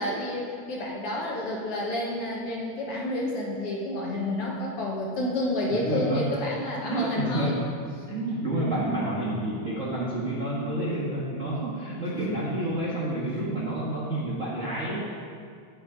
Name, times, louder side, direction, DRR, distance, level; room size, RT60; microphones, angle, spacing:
voice 1, 0.0-7.6, left 1 dB, 60° left, -2 dB, 1.8 m, -29 dB
voice 2, 5.7-6.3 6.9-7.7 8.1-15.0, right 1 dB, 55° right, -5 dB, 0.8 m, -29 dB
9.2 x 7.7 x 4.9 m, 2.2 s
omnidirectional pair, 3.3 m